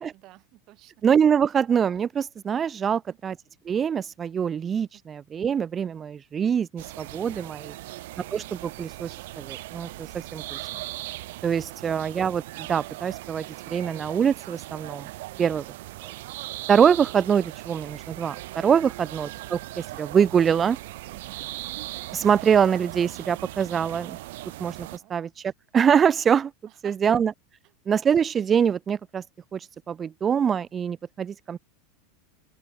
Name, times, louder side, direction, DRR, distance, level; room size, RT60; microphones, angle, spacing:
voice 1, 0.1-0.9 2.8-3.2 4.9-5.0 15.3-15.6 18.8-19.1 21.1-21.4 24.9-25.1 26.7-27.0 27.6-27.7, right 18 dB, 35° right, 6.3 m, -54 dB
voice 2, 1.0-3.4 3.7-7.7 8.3-9.1 9.4-10.6 11.4-15.1 15.4-15.6 16.7-20.8 22.1-24.2 24.6-26.5 26.8-27.3 27.9-29.2 29.5-29.6 29.9-31.6, right 7 dB, 20° right, 0.5 m, -24 dB
sound 1, 6.8-25.0, right 18 dB, 65° right, 5.1 m, -39 dB
open air
supercardioid pair, 165°, 0 cm